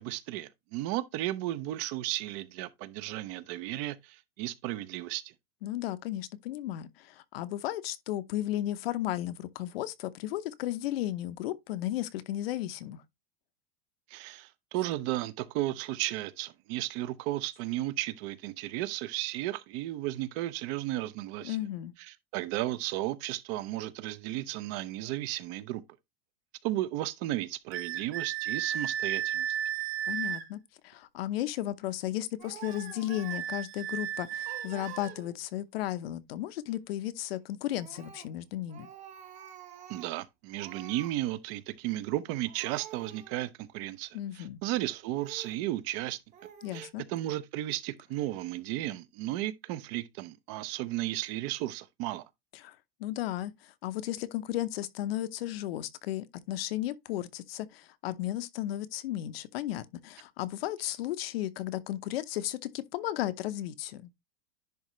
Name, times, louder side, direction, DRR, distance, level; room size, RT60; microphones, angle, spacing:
voice 1, 0.0-5.3 14.1-21.6 22.1-25.8 26.6-29.5 39.9-46.2 46.7-52.3, right 15 dB, 40° right, 0.6 m, -34 dB
voice 2, 5.6-13.0 21.4-21.9 30.1-38.9 44.1-44.6 46.6-47.0 52.5-64.1, left 14 dB, 70° left, 0.8 m, -34 dB
sound 1, 27.7-30.5 32.6-35.2, right 10 dB, 85° right, 1.4 m, -34 dB
Speech, 32.4-33.5 34.0-34.1 34.5-35.5 37.7-38.4 38.7-40.2 40.6-41.2 42.1-42.2 42.4-43.5 44.1-44.2 45.2-45.6 46.3-46.9, right 9 dB, 25° right, 1.1 m, -48 dB
10.5 x 3.7 x 3.1 m
supercardioid pair, 160°, 30 cm